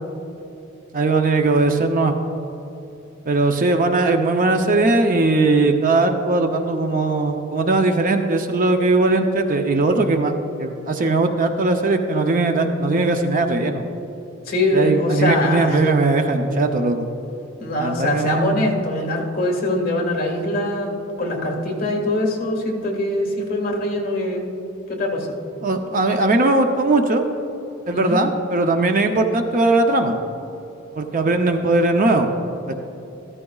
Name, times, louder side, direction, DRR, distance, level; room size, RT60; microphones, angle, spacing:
voice 1, 0.9-2.1 3.3-10.3 10.6-13.8 14.7-17.1 17.8-18.7 25.6-27.3 27.9-30.2 31.0-32.3 32.7-32.8, right 2 dB, 40° right, 5 dB, 0.6 m, -19 dB
voice 2, 14.5-15.8 17.6-24.5 24.9-25.4 27.9-28.2, left 1 dB, 40° left, 0 dB, 1.6 m, -23 dB
14.0 x 13.5 x 2.3 m, 3.0 s
head